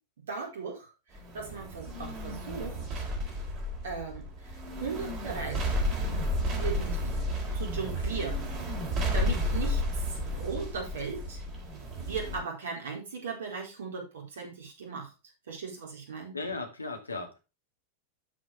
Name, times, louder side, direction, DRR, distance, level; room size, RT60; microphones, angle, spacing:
voice 1, 0.3-0.9 1.3-3.0 3.8-4.5 4.8-5.7 6.5-7.2 7.5-8.6 9.1-9.8 10.4-11.4 12.0-15.1 15.5-16.3, right 5 dB, 65° right, 0 dB, 4.4 m, -37 dB
sound 1, 1.1-12.4, left 1 dB, 35° right, 3.8 m, -32 dB
voice 2, 9.2-9.5 16.3-17.4, left 3 dB, 80° left, 3 dB, 2.1 m, -38 dB
12.5 x 5.3 x 3.5 m, 0.28 s
figure-of-eight pair, 90°, 0 cm